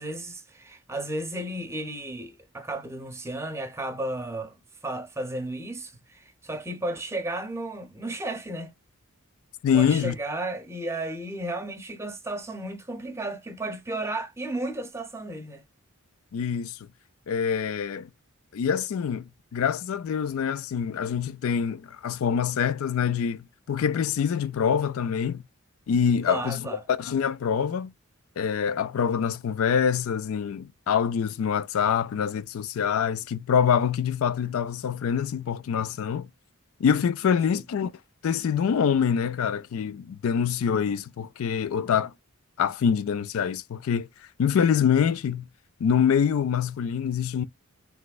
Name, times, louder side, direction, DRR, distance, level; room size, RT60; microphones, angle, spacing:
voice 1, 0.0-4.6 4.8-8.7 9.7-15.6 26.3-26.8 37.5-37.6, right 1 dB, 10° right, 0.7 m, -33 dB
voice 2, 9.6-10.1 16.3-16.8 17.3-18.1 18.5-25.4 25.9-27.9 28.4-36.3 36.8-37.9 38.2-42.1 42.6-45.5 45.8-47.4, left 7 dB, 70° left, 0.4 m, -25 dB
3.4 x 3.1 x 2.3 m
head